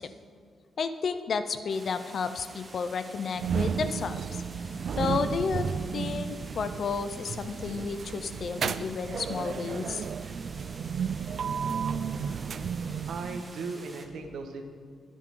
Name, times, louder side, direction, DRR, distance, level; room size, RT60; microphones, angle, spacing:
voice 1, 0.8-4.4 5.0-5.6 5.9-10.1, left 5 dB, 45° left, 10 dB, 0.7 m, -32 dB
sound 1, 1.7-14.1, right 2 dB, 20° right, 1.2 m, -49 dB
sound 2, 3.4-13.5, right 6 dB, 50° right, 0.4 m, -33 dB
voice 2, 13.1-14.6, right 4 dB, 80° right, 5 dB, 1.6 m, -37 dB
23.0 x 9.3 x 3.9 m, 2.2 s
wide cardioid pair, 165°, 0 cm